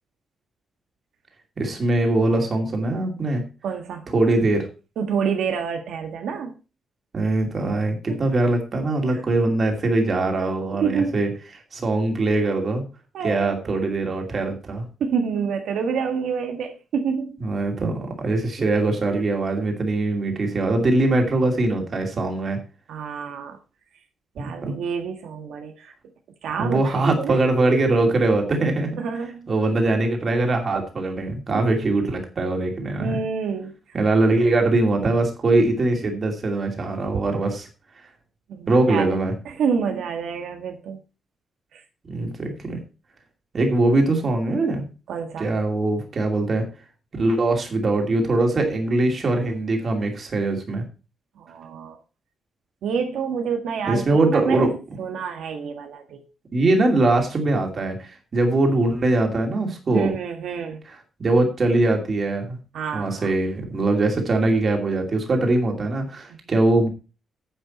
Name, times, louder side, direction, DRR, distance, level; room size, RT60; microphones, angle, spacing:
voice 1, 1.6-3.4 4.1-4.7 7.1-12.8 13.2-14.8 17.4-22.6 24.4-24.7 26.6-29.0 29.5-33.2 33.9-37.7 38.7-39.3 42.1-42.8 43.5-44.9 45.4-46.7 47.1-50.8 53.9-54.7 56.5-60.1 60.9-62.6 62.9-66.9, right 2 dB, 30° right, 2.7 m, -22 dB
voice 2, 3.6-4.0 5.0-6.5 8.1-8.2 9.1-9.2 10.7-11.2 13.1-13.5 15.0-17.4 22.9-23.6 24.4-25.9 26.4-27.4 27.7-27.8 29.0-29.4 31.5-31.7 33.0-33.7 37.1-37.2 38.5-39.1 39.4-41.0 41.7-41.8 45.1-45.5 51.4-52.0 52.8-54.7 55.0-56.2 59.9-60.8 62.7-63.3, right 6 dB, 80° right, 1.6 m, -27 dB
10.0 x 8.6 x 4.3 m
wide cardioid pair, 180°, 0 cm